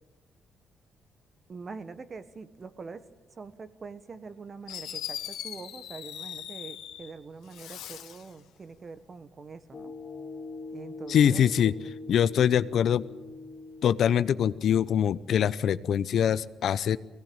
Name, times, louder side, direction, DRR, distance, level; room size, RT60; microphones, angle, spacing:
voice 1, 1.5-3.1 3.3-9.9 10.7-11.7, right 4 dB, 40° right, 12 dB, 1.4 m, -44 dB
Fireworks, 4.7-7.1 7.5-8.3, left 11 dB, 85° left, 1.6 m, -40 dB
sound 1, 9.7-15.2, left 3 dB, 45° left, 1.9 m, -43 dB
voice 2, 11.1-11.7 12.1-13.1 13.8-17.0, left 9 dB, 65° left, 15 dB, 0.7 m, -23 dB
21.0 x 17.5 x 8.9 m, 1.1 s
cardioid pair, 90°, 0 cm